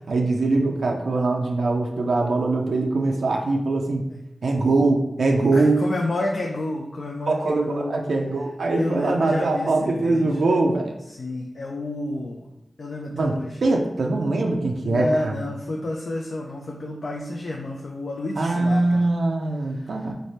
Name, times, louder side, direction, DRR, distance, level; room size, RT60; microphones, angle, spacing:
voice 1, 0.1-4.1 4.4-5.8 7.3-11.0 13.1-15.3 18.4-20.1, right 2 dB, 80° right, 1 dB, 0.4 m, -22 dB
voice 2, 5.5-8.0 8.7-10.4 11.1-12.4 12.8-13.6 14.8-19.1 19.7-20.1, left 2 dB, 70° left, 0 dB, 0.4 m, -30 dB
3.2 x 2.1 x 4.1 m, 0.87 s
cardioid pair, 40°, 0 cm